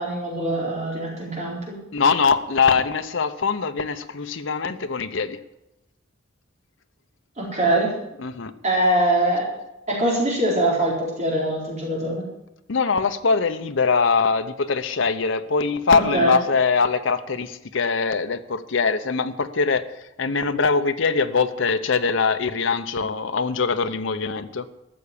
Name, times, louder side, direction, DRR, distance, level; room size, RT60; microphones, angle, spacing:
voice 1, 0.0-1.7 7.4-7.9 8.6-9.5 9.9-12.2 15.9-16.4, right 1 dB, 35° right, -3 dB, 4.3 m, -23 dB
voice 2, 1.9-5.4 8.2-8.5 12.7-19.8 20.2-24.6, left 5 dB, 65° left, 8 dB, 0.8 m, -22 dB
13.5 x 7.0 x 8.4 m, 0.91 s
head